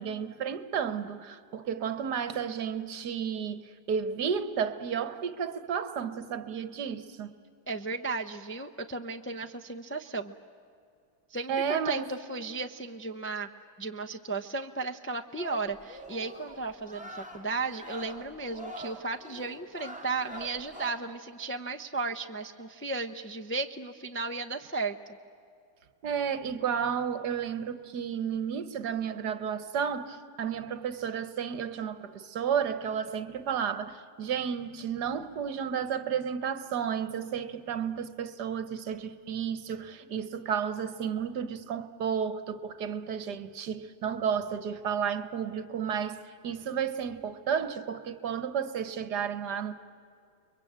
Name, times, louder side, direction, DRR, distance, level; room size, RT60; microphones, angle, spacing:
voice 1, 0.0-7.3 11.5-12.1 26.0-49.7, right 7 dB, 70° right, 1.6 m, -32 dB
voice 2, 7.7-10.3 11.3-13.5 13.8-25.0, right 3 dB, 20° left, 0.3 m, -35 dB
sound 1, 15.4-20.9, right 1 dB, 5° right, 2.3 m, -44 dB
30.0 x 23.0 x 8.8 m
omnidirectional pair, 1.9 m